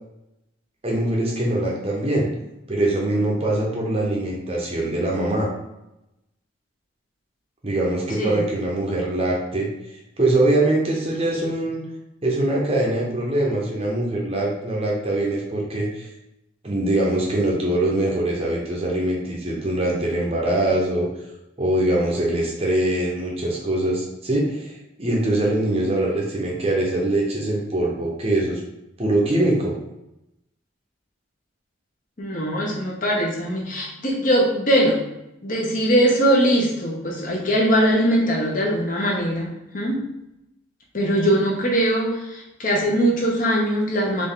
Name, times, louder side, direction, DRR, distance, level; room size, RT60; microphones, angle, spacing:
voice 1, 0.8-2.3 2.7-5.5 7.6-9.7 10.2-11.8 12.2-16.1 16.6-21.1 21.6-28.6 29.0-29.7, right 1 dB, 30° right, -3 dB, 0.8 m, -23 dB
voice 2, 32.2-35.0 35.4-40.1 40.9-44.3, equal, 40° left, -2 dB, 1.0 m, -21 dB
4.0 x 3.3 x 3.8 m, 0.90 s
head